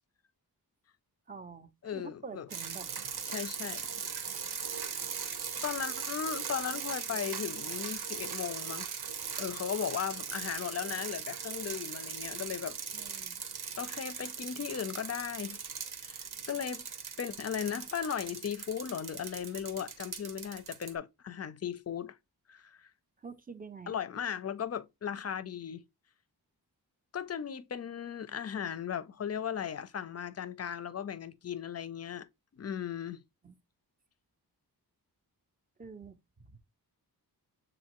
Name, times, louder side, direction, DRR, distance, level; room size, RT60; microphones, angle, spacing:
voice 1, 1.3-2.9 12.9-13.4 23.2-24.0 33.4-33.6 35.8-36.6, right 5 dB, 25° right, 0.5 m, -47 dB
voice 2, 1.8-2.5 3.3-4.0 5.6-8.9 9.4-12.7 13.8-15.6 16.0-16.9 17.2-22.2 22.5-22.9 23.9-25.8 27.1-32.3 32.5-33.2, left 8 dB, 40° left, 0.4 m, -37 dB
sound 1, 2.5-20.9, right 6 dB, 75° right, 0.9 m, -39 dB
7.2 x 2.5 x 2.9 m
wide cardioid pair, 145°, 38 cm